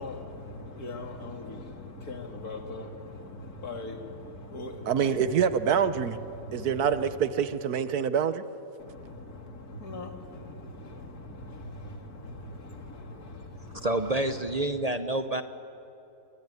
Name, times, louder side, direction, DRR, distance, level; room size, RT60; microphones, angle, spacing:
voice 1, 0.0-7.2 8.8-14.6, left 2 dB, 80° left, 2.8 m, -41 dB
voice 2, 4.9-6.2 6.5-8.4, right 7 dB, 85° right, 1.5 m, -26 dB
voice 3, 13.7-15.4, right 1 dB, 35° right, 0.6 m, -28 dB
27.0 x 22.0 x 9.6 m
omnidirectional pair, 1.6 m